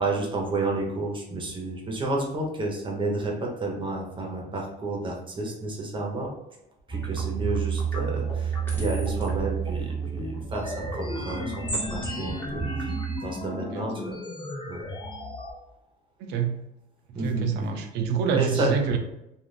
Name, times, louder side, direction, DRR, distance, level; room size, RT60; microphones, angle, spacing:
voice 1, 0.0-6.3 6.9-14.1 14.7-14.9 17.1-17.8 18.3-18.7, right 2 dB, 30° right, 0 dB, 0.9 m, -31 dB
sound 1, 6.9-13.2, right 6 dB, 10° left, 1.1 m, -30 dB
sound 2, 10.5-15.5, left 2 dB, 30° left, 0.8 m, -35 dB
voice 2, 16.3-16.6 17.2-19.0, right 6 dB, 85° right, 5 dB, 0.5 m, -26 dB
2.5 x 2.4 x 3.3 m, 0.86 s
cardioid pair, 110°, 17 cm